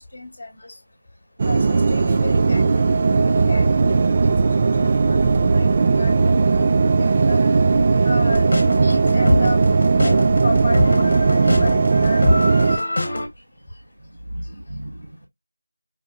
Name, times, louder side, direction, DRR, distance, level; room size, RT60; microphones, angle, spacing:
voice 1, 0.1-0.7 1.4-7.4 8.0-9.6 9.8-12.8, left 2 dB, 20° left, 1.5 m, -33 dB
sound 1, 1.4-12.8, right 4 dB, 20° right, 0.3 m, -17 dB
sound 2, 8.3-13.3, left 1 dB, 40° left, 1.2 m, -24 dB
voice 2, 14.0-15.3, right 1 dB, 45° right, 1.4 m, -35 dB
5.3 x 2.8 x 2.4 m
figure-of-eight pair, 175°, 0 cm